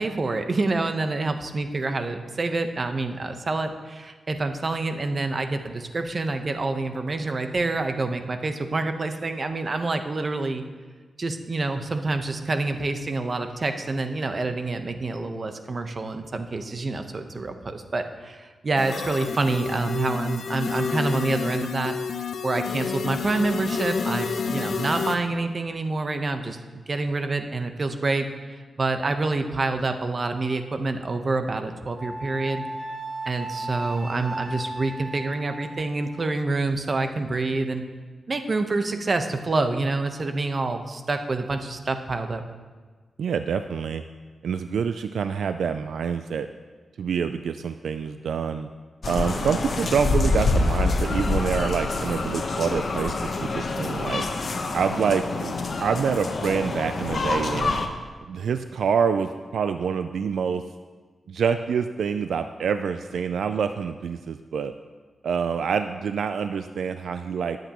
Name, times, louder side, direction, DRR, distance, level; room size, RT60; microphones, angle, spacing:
voice 1, 0.0-10.6 11.2-22.0 22.4-32.6 33.2-37.8 38.3-42.4, right 3 dB, 45° right, 7 dB, 1.0 m, -27 dB
sound 1, 18.8-25.2, left 5 dB, 80° left, 0.7 m, -29 dB
Wind instrument woodwind instrument, 32.0-36.3, right 2 dB, 60° right, 2.0 m, -35 dB
voice 2, 43.2-44.0 44.4-46.5 47.0-48.7 49.1-53.1 53.4-54.2 54.7-55.5 55.8-57.8 58.3-60.6 61.3-64.7 65.2-67.6, right 6 dB, 85° right, 9 dB, 0.3 m, -26 dB
sound 2, 49.0-57.9, left 3 dB, 55° left, 1.1 m, -26 dB
21.0 x 8.0 x 3.0 m, 1.4 s
cardioid pair, 75°, 0 cm